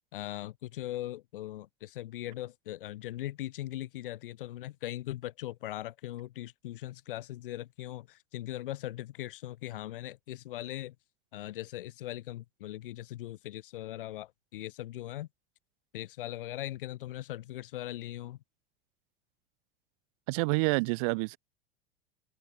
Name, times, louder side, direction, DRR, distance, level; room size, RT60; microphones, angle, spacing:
voice 1, 0.1-11.0 11.3-15.3 15.9-18.4, left 14 dB, 60° left, 1.9 m, -40 dB
voice 2, 20.3-21.4, right 30 dB, 35° right, 0.4 m, -28 dB
open air
figure-of-eight pair, 85°, 31 cm